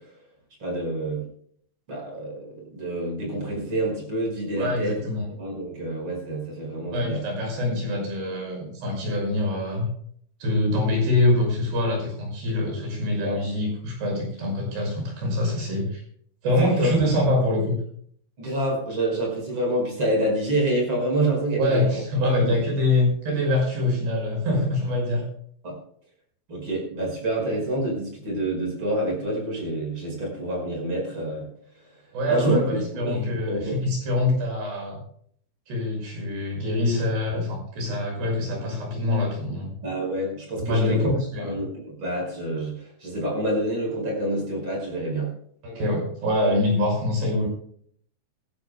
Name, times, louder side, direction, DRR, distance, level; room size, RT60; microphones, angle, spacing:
voice 1, 0.6-1.2 1.9-5.0 5.4-7.2 13.2-13.4 16.6-16.9 18.4-22.0 22.3-22.5 25.6-25.8 26.5-31.5 32.3-33.7 39.8-41.1 41.4-45.3, right 1 dB, 25° right, 0 dB, 5.6 m, -27 dB
voice 2, 4.6-5.3 6.9-9.9 10.4-16.0 16.4-17.8 21.6-25.3 32.1-35.0 35.7-39.7 40.6-41.6 45.6-47.5, left 1 dB, 60° right, 0 dB, 7.8 m, -24 dB
26.5 x 11.5 x 2.2 m, 0.62 s
omnidirectional pair, 5.3 m